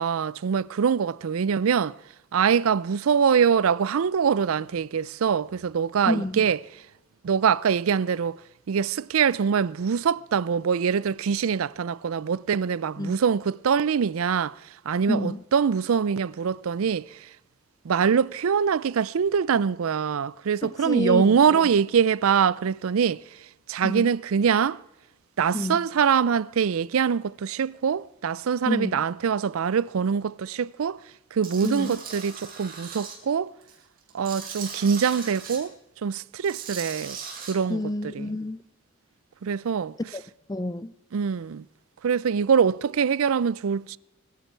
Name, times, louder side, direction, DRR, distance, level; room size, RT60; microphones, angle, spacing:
voice 1, 0.0-2.0 2.3-6.6 7.2-8.4 8.7-14.6 14.9-17.2 17.8-23.2 23.7-24.8 25.4-31.0 31.3-33.5 34.1-35.7 36.0-37.2 37.5-37.8 38.1-38.3 39.4-39.9 41.1-41.6 42.0-44.0, right 7 dB, 85° right, 0.4 m, -24 dB
voice 2, 6.1-6.5 13.0-13.2 15.1-15.4 20.6-21.7 23.8-24.1 25.5-25.9 28.7-29.0 31.6-31.9 37.7-38.6 40.1-40.2 40.5-40.9, left 1 dB, 20° left, 0.4 m, -29 dB
Tools, 31.4-33.1 33.6-35.6 36.3-37.5, right 6 dB, 45° right, 4.9 m, -38 dB
21.5 x 12.0 x 4.5 m
head